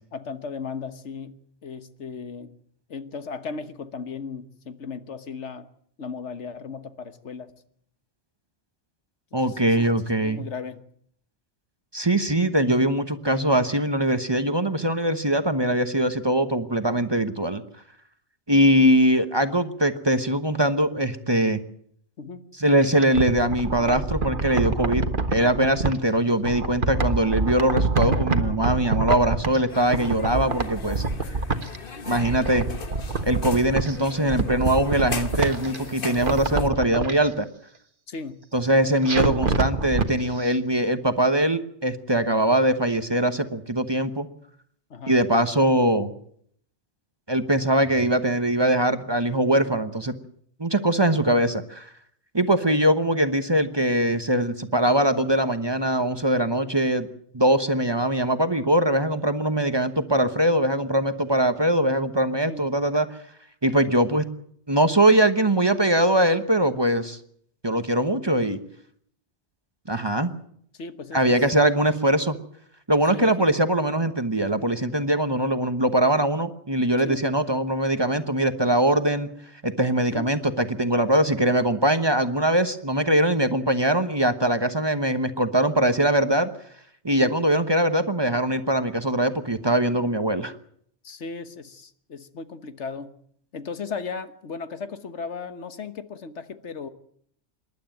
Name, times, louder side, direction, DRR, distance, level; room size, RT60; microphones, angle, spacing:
voice 1, 0.1-2.6 2.9-5.7 6.0-7.5 9.3-9.9 10.2-10.8 22.2-22.4 38.1-38.4 44.9-45.2 62.5-62.7 70.7-71.7 73.1-73.3 77.0-77.3 80.1-80.3 87.1-87.3 91.0-93.2 93.5-96.9, left 5 dB, 80° left, 11 dB, 1.6 m, -36 dB
voice 2, 9.3-10.4 11.9-17.6 18.5-21.6 22.6-25.0 25.3-31.0 32.1-32.7 33.2-37.5 38.5-44.3 45.1-46.1 47.3-50.1 50.6-51.9 52.3-57.1 57.3-63.1 63.6-64.2 64.7-67.2 67.6-68.6 69.9-70.3 71.1-72.4 72.9-79.3 79.6-86.5 87.0-90.5, right 1 dB, 25° right, 9 dB, 1.1 m, -22 dB
sound 1, 22.8-26.0 26.4-29.7 29.9-31.8 32.1-33.9 34.3-35.8 36.1-37.1 39.1-40.1 40.4-40.5, right 3 dB, 50° right, 1.6 m, -26 dB
sound 2, 29.7-36.7, left 5 dB, 50° left, 1.4 m, -38 dB
27.0 x 12.0 x 9.0 m, 0.66 s
omnidirectional pair, 1.2 m